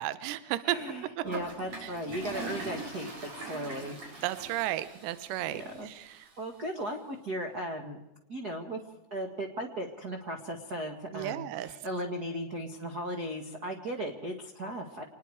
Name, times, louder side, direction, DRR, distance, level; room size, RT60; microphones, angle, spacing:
voice 1, 0.0-0.8 1.8-1.9 4.2-6.3 11.1-11.7, right 14 dB, 80° right, 14 dB, 3.0 m, -33 dB
voice 2, 0.6-4.2 5.5-5.9 6.4-8.0 8.3-15.0, right 1 dB, 60° right, 3 dB, 1.0 m, -37 dB
Toilet flush, 1.2-6.3, right 2 dB, 35° right, 5.0 m, -42 dB
26.5 x 20.5 x 4.9 m, 0.93 s
omnidirectional pair, 4.9 m